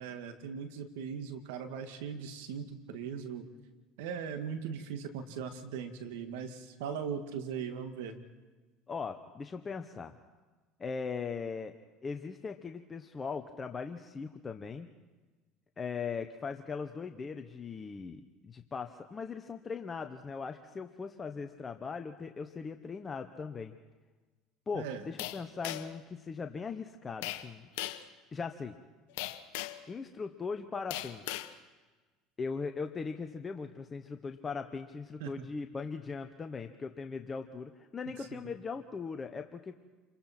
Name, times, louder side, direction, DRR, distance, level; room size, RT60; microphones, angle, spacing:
voice 1, 0.0-3.5 4.0-8.2 24.7-25.0 35.2-35.5 38.4-38.5, right 7 dB, 80° right, 7 dB, 2.0 m, -39 dB
voice 2, 8.9-10.1 10.8-11.8 12.0-14.9 15.8-23.7 24.7-27.7 28.3-28.8 29.9-31.4 32.4-39.8, left 5 dB, 25° left, 6 dB, 1.1 m, -39 dB
sound 1, 25.2-26.0 27.2-27.5 27.8-28.1 29.2-29.9 30.9-31.5, left 15 dB, 80° left, 1.2 m, -38 dB
28.5 x 23.0 x 4.4 m, 1.3 s
supercardioid pair, 100°, 0 cm